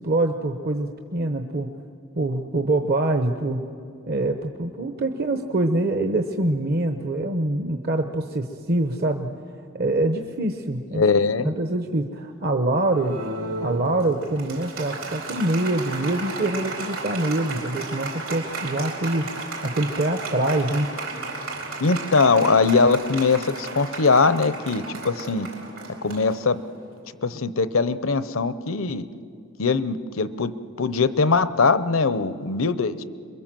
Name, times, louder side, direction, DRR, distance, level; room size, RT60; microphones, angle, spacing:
voice 1, 0.0-1.7 2.2-3.7 4.1-9.3 9.7-11.0 11.4-13.2 13.6-19.3 19.6-20.9, right 2 dB, 50° right, 5 dB, 0.9 m, -25 dB
voice 2, 10.9-11.5 21.8-25.5 26.0-26.6 27.2-29.1 29.6-30.5 30.8-33.0, left 4 dB, 75° left, 14 dB, 0.8 m, -21 dB
Applause, 12.8-26.9, right 3 dB, 80° right, 4.5 m, -34 dB
27.5 x 22.0 x 7.6 m, 2.5 s
head